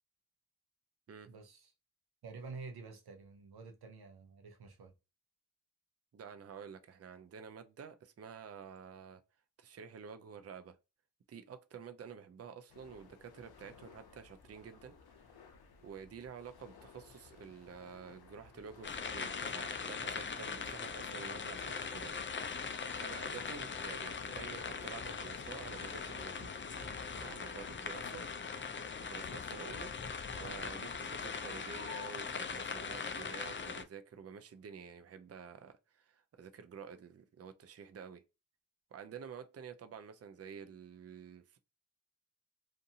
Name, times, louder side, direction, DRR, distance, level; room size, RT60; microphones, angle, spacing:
voice 1, 1.3-1.7 2.2-4.9, right 4 dB, 90° right, 0.6 m, -49 dB
voice 2, 6.1-9.2 9.6-10.8 11.3-14.9 15.8-22.2 22.4-28.3 29.0-29.9 30.3-38.2 38.9-41.6, right 6 dB, 40° right, 0.4 m, -50 dB
sound 1, 12.7-28.3, left 5 dB, 85° left, 0.5 m, -58 dB
sound 2, 18.8-33.8, left 5 dB, 35° left, 0.4 m, -41 dB
2.5 x 2.5 x 2.7 m
cardioid pair, 40°, 37 cm